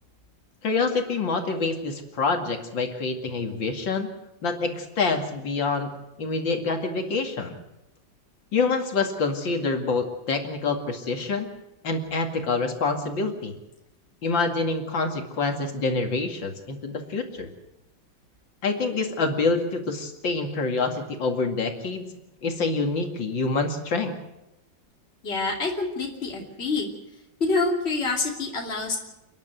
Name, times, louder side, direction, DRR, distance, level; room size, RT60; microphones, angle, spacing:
voice 1, 0.6-4.1 4.4-5.9 6.2-7.6 8.5-11.5 11.8-13.6 14.2-17.5 18.6-22.1 22.4-24.2, left 3 dB, 80° left, 4 dB, 3.0 m, -26 dB
voice 2, 25.2-26.9 27.4-29.0, left 3 dB, 35° left, -1 dB, 3.2 m, -26 dB
29.0 x 11.0 x 9.1 m, 0.93 s
omnidirectional pair, 2.1 m